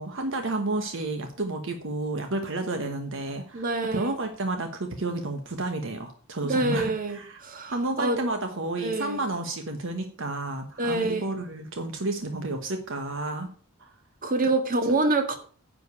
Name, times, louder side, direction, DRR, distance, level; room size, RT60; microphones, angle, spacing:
voice 1, 0.0-7.4 7.7-13.5 13.8-13.9, right 2 dB, 65° right, 6 dB, 1.3 m, -31 dB
voice 2, 3.5-4.2 6.4-8.2 8.8-9.2 10.8-11.3 14.2-15.4, right 2 dB, 40° right, 6 dB, 1.8 m, -26 dB
10.0 x 5.2 x 8.2 m, 0.43 s
head